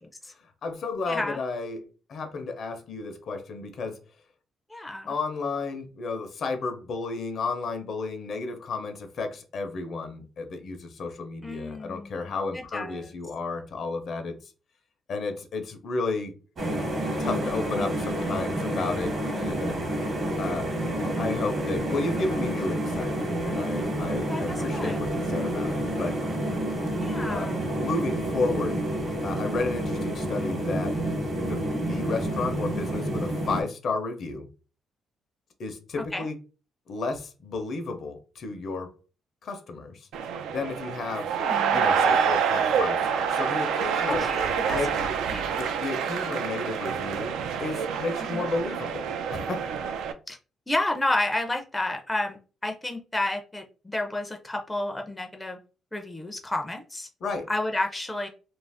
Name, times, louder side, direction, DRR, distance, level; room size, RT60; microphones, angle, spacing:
voice 1, 0.4-4.0 5.0-14.4 15.1-16.3 17.2-19.8 20.4-20.7 21.0-23.2 23.4-26.2 27.3-27.5 27.8-28.8 29.2-31.0 31.4-34.5 35.6-36.4 36.9-38.9 39.4-40.1 40.5-41.4 41.7-44.3 44.7-45.2 45.6-49.7 57.2-57.5, left 3 dB, 60° left, 0.6 m, -32 dB
voice 2, 1.1-1.4 4.7-5.1 11.4-13.1 24.3-25.0 27.0-27.7 31.7-32.1 36.1-36.3 41.3-41.9 44.1-45.4 48.3-48.5 50.3-50.4 50.7-55.6 55.9-57.1 57.5-58.3, left 2 dB, 10° left, 0.4 m, -31 dB
sound 1, 16.6-33.6, right 1 dB, 50° right, 1.0 m, -29 dB
sound 2, 40.1-50.1, right 7 dB, 85° right, 0.3 m, -27 dB
2.5 x 2.0 x 3.3 m
cardioid pair, 90°, 0 cm